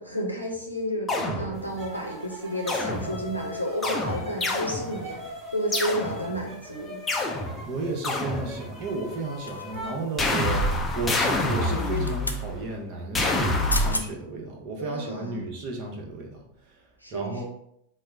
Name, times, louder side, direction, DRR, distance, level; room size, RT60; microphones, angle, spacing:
voice 1, 0.0-7.0 14.8-15.4 17.0-17.4, equal, 90° right, -1 dB, 0.6 m, -31 dB
sound 1, 1.1-1.9 2.7-3.4 3.8-5.2 5.7-6.5 7.1-8.9 10.2-12.7 13.1-14.0, left 1 dB, 15° left, 0.6 m, -27 dB
sound 2, 1.8-11.1 11.4-11.9, equal, 15° right, 1.1 m, -41 dB
voice 2, 7.7-17.4, right 3 dB, 40° right, 0 dB, 0.8 m, -33 dB
sound 3, 9.5-10.0 11.8-12.4 13.4-13.5 13.7-14.1 14.6-14.8, left 2 dB, 85° left, 0.3 m, -32 dB
4.2 x 2.0 x 3.4 m, 0.76 s
figure-of-eight pair, 90°, 0 cm